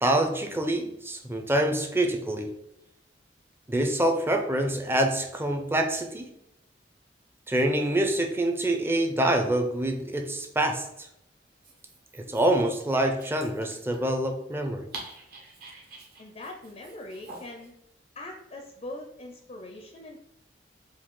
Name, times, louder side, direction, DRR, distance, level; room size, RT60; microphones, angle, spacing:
voice 1, 0.0-2.5 3.7-6.3 7.5-11.1 12.2-14.9, right 1 dB, 15° right, 4 dB, 0.5 m, -26 dB
Dog, 11.5-17.7, right 2 dB, 55° right, 1.1 m, -47 dB
voice 2, 16.2-17.7 18.2-20.2, left 1 dB, 35° left, 3 dB, 0.5 m, -41 dB
4.9 x 2.3 x 3.7 m, 0.80 s
head